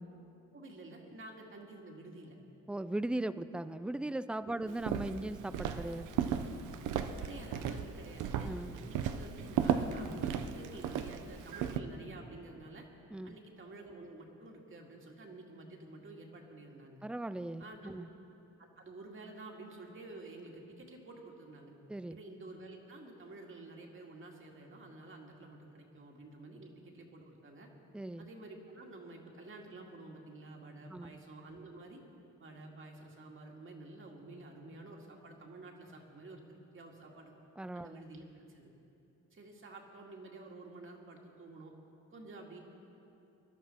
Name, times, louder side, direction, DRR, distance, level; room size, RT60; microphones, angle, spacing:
voice 1, 0.5-2.4 4.5-4.8 7.2-12.9 13.2-17.0 17.6-18.1 18.6-21.7 22.1-27.7 28.2-32.0 32.4-37.3 37.7-38.2 38.5-38.7 39.3-41.7 42.1-42.6, right 2 dB, 40° right, 1 dB, 2.1 m, -50 dB
voice 2, 2.7-6.1 8.4-8.8 13.1-13.4 17.0-18.1 21.9-22.2 27.9-28.3 30.9-31.2 37.6-38.0, right 1 dB, 5° right, 14 dB, 0.3 m, -38 dB
Walk footsteps, 4.8-11.8, right 8 dB, 85° right, 0.7 m, -35 dB
20.5 x 11.5 x 4.4 m, 2.9 s
cardioid pair, 90°, 30 cm